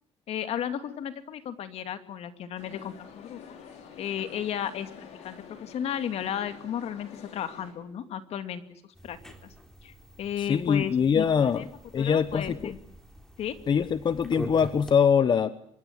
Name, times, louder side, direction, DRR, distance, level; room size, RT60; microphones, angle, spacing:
voice 1, 0.3-3.6 4.0-8.6 9.0-9.2 9.8-9.9 10.2-11.7 12.0-12.8 13.4-13.6, left 9 dB, 70° left, 9 dB, 2.5 m, -34 dB
sound 1, 2.6-7.7, left 7 dB, 85° left, 5.9 m, -48 dB
sound 2, 8.9-14.9, equal, 5° left, 3.5 m, -44 dB
voice 2, 10.4-11.7 11.9-12.7 13.7-15.5, left 7 dB, 45° left, 13 dB, 1.1 m, -23 dB
25.5 x 22.5 x 9.3 m, 0.66 s
cardioid pair, 115°, 11 cm